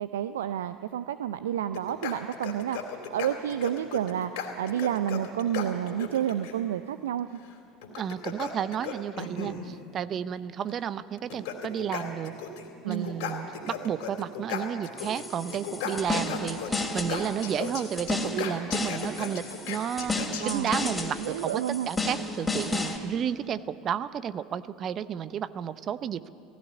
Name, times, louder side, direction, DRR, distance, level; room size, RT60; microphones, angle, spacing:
voice 1, 0.0-7.3 12.8-13.1 20.4-20.7 21.2-21.9, right 10 dB, 75° right, 12 dB, 0.5 m, -30 dB
sound 1, 1.7-6.5 7.8-9.6 10.7-10.8 11.2-12.7 12.9-15.2 15.5-20.9, left 7 dB, 70° left, 3.0 m, -36 dB
voice 2, 8.0-12.3 12.8-26.3, right 8 dB, 45° right, 15 dB, 0.7 m, -32 dB
sound 2, 15.0-23.0, left 2 dB, 15° left, 2.8 m, -33 dB
16.5 x 16.0 x 9.8 m, 2.5 s
hypercardioid pair, 70°, 0 cm